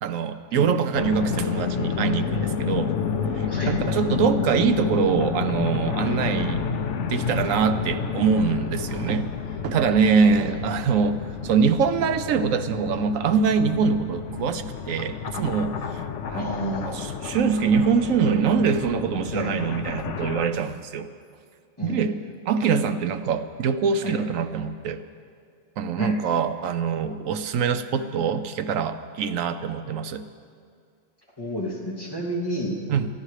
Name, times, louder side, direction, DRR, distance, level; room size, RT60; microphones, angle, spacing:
voice 1, 0.0-2.9 3.3-6.7 7.0-9.3 9.6-16.5 16.9-21.1 21.8-22.2 22.5-25.0 25.8-30.2 32.9-33.1, right 6 dB, 80° right, 10 dB, 1.1 m, -24 dB
sound 1, 0.9-20.5, left 6 dB, 65° left, 1.0 m, -30 dB
voice 2, 3.5-3.8 8.9-9.2 10.2-10.6 16.3-17.2 19.3-19.5 21.8-22.1 24.0-24.2 26.0-26.1 31.4-32.8, equal, 15° left, -5 dB, 2.7 m, -30 dB
22.5 x 14.0 x 3.3 m, 2.2 s
omnidirectional pair, 1.4 m